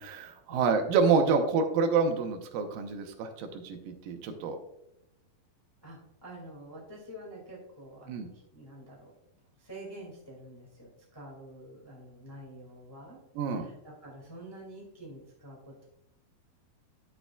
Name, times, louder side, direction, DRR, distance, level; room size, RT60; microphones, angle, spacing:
voice 1, 0.0-4.6 8.1-8.3 13.4-13.7, right 5 dB, 75° right, 5 dB, 2.3 m, -27 dB
voice 2, 5.8-9.1 9.6-13.2 13.5-15.8, right 1 dB, 40° left, -4 dB, 0.3 m, -47 dB
11.5 x 6.7 x 2.3 m, 0.82 s
omnidirectional pair, 4.6 m